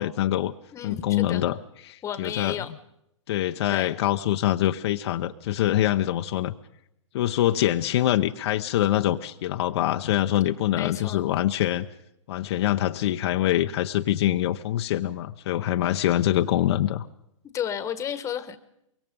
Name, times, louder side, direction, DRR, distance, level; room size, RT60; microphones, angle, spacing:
voice 1, 0.0-0.5 0.8-1.6 1.8-2.6 3.3-6.5 7.1-11.9 12.3-17.1, left 13 dB, 55° left, 7 dB, 0.8 m, -24 dB
voice 2, 0.7-1.4 2.0-2.7 3.7-3.9 10.7-11.2 17.5-18.6, left 9 dB, 20° left, 12 dB, 1.3 m, -32 dB
24.0 x 22.5 x 5.3 m, 0.81 s
hypercardioid pair, 135°, 17 cm